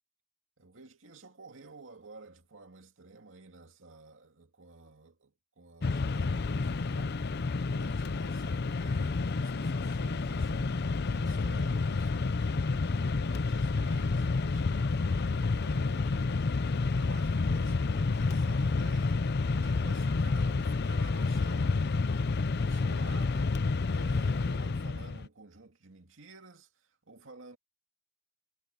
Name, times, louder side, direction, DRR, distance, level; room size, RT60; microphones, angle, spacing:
voice 1, 0.6-7.2 7.6-10.8 11.1-22.0 22.6-23.6 23.9-27.6, right 3 dB, 75° right, 2.4 m, -53 dB
Mechanisms, 5.8-25.3, left 3 dB, 55° left, 0.6 m, -29 dB
head